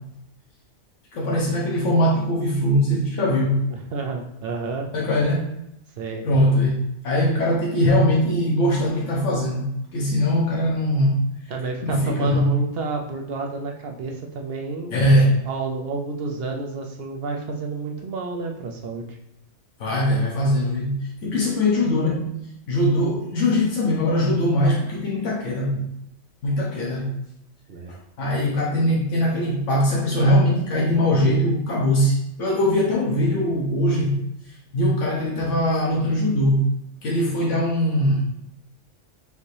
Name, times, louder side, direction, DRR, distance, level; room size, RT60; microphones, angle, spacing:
voice 1, 1.1-3.6 4.9-5.5 6.2-9.6 9.9-11.2 11.8-12.5 14.9-15.4 19.8-22.3 22.7-25.8 26.4-27.1 27.9-34.2 34.7-36.7 37.0-38.2, equal, 80° left, -4 dB, 1.2 m, -21 dB
voice 2, 3.7-4.9 6.0-6.2 11.5-15.0 15.4-19.2 27.7-27.9, right 3 dB, 65° right, 2 dB, 0.7 m, -30 dB
5.1 x 2.7 x 3.2 m, 0.80 s
omnidirectional pair, 1.2 m